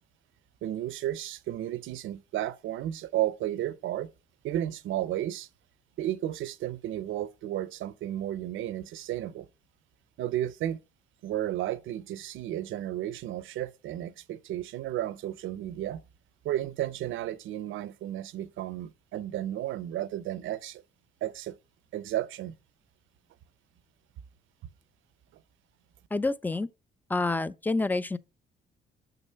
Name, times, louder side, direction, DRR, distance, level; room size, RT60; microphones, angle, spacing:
voice 1, 0.6-4.1 4.4-5.5 6.0-9.5 10.2-10.8 11.2-16.0 16.4-20.8 21.2-21.5 21.9-22.5, right 13 dB, 80° right, 0.6 m, -33 dB
voice 2, 26.1-26.7 27.1-28.2, left 3 dB, 10° left, 0.4 m, -28 dB
6.8 x 3.9 x 5.5 m
cardioid pair, 90°, 20 cm